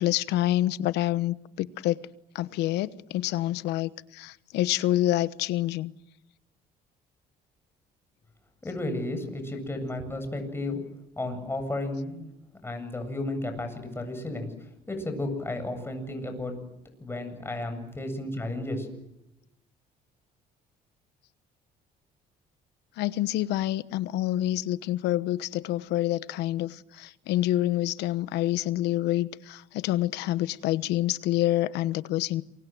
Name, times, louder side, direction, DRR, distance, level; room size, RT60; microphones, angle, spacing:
voice 1, 0.0-2.0 2.3-5.9 23.0-32.4, left 14 dB, 85° left, 1.1 m, -27 dB
voice 2, 8.6-10.8 11.2-12.3 12.6-16.6 17.0-18.9, left 2 dB, 15° left, 7.9 m, -33 dB
27.5 x 24.0 x 7.8 m
cardioid pair, 110°, 17 cm